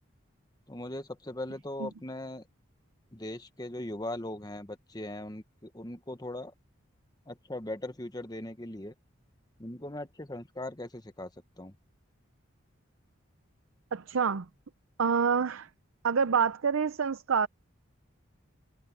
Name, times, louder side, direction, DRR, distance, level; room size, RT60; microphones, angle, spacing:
voice 1, 0.7-2.4 3.1-6.5 7.3-8.9 9.6-11.3 11.6-11.7, left 1 dB, 20° left, 1.1 m, -39 dB
voice 2, 13.9-14.5 15.0-15.7 16.0-17.5, right 6 dB, 70° right, 0.6 m, -27 dB
head